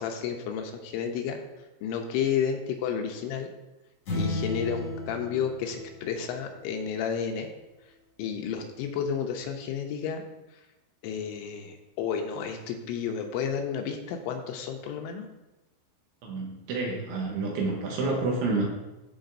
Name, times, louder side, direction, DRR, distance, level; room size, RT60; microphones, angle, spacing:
voice 1, 0.0-1.4 1.8-3.5 4.1-7.5 8.2-10.2 11.0-15.3, left 7 dB, 80° left, 4 dB, 2.9 m, -31 dB
sound 1, 4.1-6.7, left 2 dB, 50° left, 1.7 m, -34 dB
voice 2, 16.2-18.6, right 3 dB, 70° right, 0 dB, 2.7 m, -29 dB
14.5 x 5.1 x 2.6 m, 1.0 s
omnidirectional pair, 5.7 m